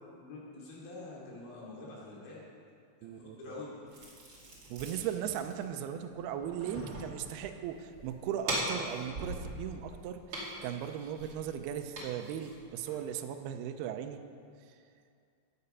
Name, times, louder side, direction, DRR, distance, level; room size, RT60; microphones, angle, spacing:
voice 1, 0.1-2.4 3.0-3.7, left 2 dB, 70° left, -5 dB, 4.9 m, -46 dB
voice 2, 3.0-3.4 4.7-14.2, right 9 dB, 85° right, 6 dB, 2.3 m, -38 dB
preparing food for aquatic turtles and feeding, 3.9-13.2, right 1 dB, 35° right, 2.6 m, -42 dB
15.0 x 9.3 x 5.5 m, 2.3 s
omnidirectional pair, 5.3 m